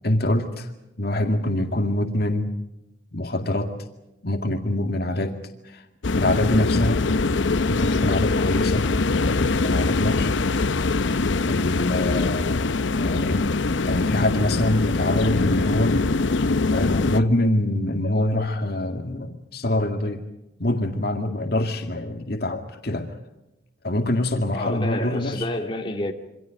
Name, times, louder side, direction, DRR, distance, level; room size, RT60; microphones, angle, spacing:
voice 1, 0.0-0.7 1.0-2.5 3.1-3.7 4.2-5.4 5.6-5.8 6.2-7.1 7.7-8.9 9.2-10.3 11.4-12.7 13.0-13.4 13.8-16.0 16.7-20.2 20.6-23.2 23.8-25.5, left 1 dB, 55° left, 2.1 m, -25 dB
sound 1, 6.0-17.2, left 3 dB, 80° left, 0.7 m, -23 dB
voice 2, 24.5-26.1, left 1 dB, 25° left, 2.6 m, -29 dB
28.0 x 25.5 x 5.1 m
head